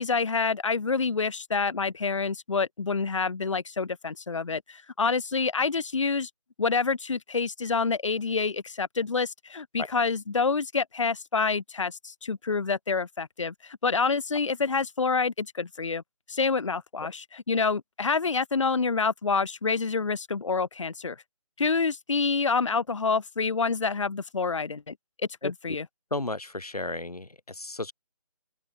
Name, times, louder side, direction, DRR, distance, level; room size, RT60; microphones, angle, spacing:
voice 1, 0.0-6.3 6.6-16.0 16.3-21.2 21.6-24.9 25.4-25.8, left 4 dB, 50° left, 1.2 m, -27 dB
voice 2, 25.4-25.8 26.1-27.9, left 2 dB, 75° left, 4.7 m, -33 dB
open air
figure-of-eight pair, 160°, 19 cm